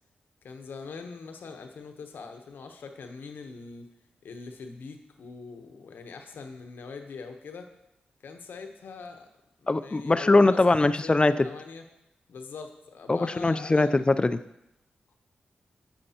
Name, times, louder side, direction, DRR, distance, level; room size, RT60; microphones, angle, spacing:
voice 1, 0.4-3.9 4.2-7.7 8.2-9.3 9.6-11.8 12.3-14.0, left 4 dB, 80° left, 5 dB, 0.9 m, -42 dB
voice 2, 9.7-11.5 13.1-14.4, left 2 dB, 30° left, 13 dB, 0.4 m, -22 dB
8.5 x 8.0 x 2.9 m, 0.85 s
supercardioid pair, 45°, 3 cm